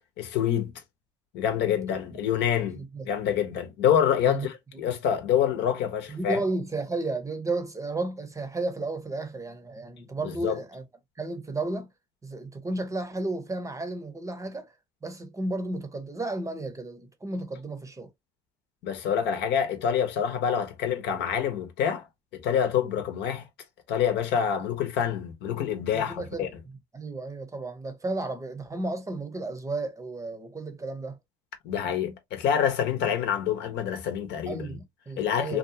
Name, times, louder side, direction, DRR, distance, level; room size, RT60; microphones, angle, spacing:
voice 1, 0.2-0.7 1.3-6.4 10.2-10.6 18.8-22.0 22.3-23.5 23.9-26.5 31.6-34.7 35.2-35.6, left 8 dB, 65° left, 0.9 m, -26 dB
voice 2, 2.7-3.1 4.3-4.5 6.1-10.8 11.2-11.9 12.2-14.7 15.0-18.1 25.9-26.5 26.9-31.2 34.5-35.6, right 2 dB, 15° right, 0.8 m, -33 dB
2.7 x 2.3 x 2.7 m
hypercardioid pair, 75°, 19 cm